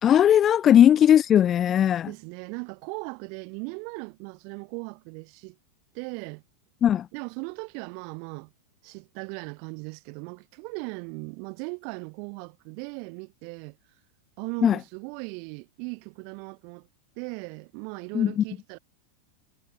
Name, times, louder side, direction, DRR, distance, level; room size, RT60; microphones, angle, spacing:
voice 1, 0.0-2.1 6.8-7.1 14.6-14.8 18.1-18.4, left 10 dB, 25° left, 0.4 m, -18 dB
voice 2, 2.1-5.6 5.9-6.4 7.1-8.5 8.8-13.8 14.4-16.9 17.2-18.8, right 40 dB or more, 45° right, 3.2 m, -38 dB
figure-of-eight pair, 90°, 0 cm